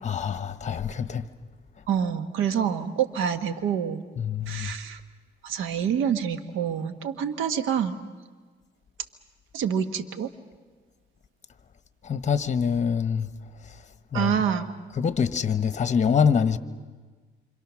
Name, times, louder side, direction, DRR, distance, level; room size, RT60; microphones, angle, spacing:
voice 1, 0.0-1.3 4.2-4.7 12.0-13.3 14.1-14.4 15.0-16.6, left 7 dB, 35° left, 1.2 m, -25 dB
voice 2, 1.9-4.0 4.5-5.0 5.4-8.0 9.5-10.3 14.1-14.7, right 8 dB, 85° right, 1.4 m, -27 dB
27.5 x 25.5 x 6.3 m
cardioid pair, 90°, 20 cm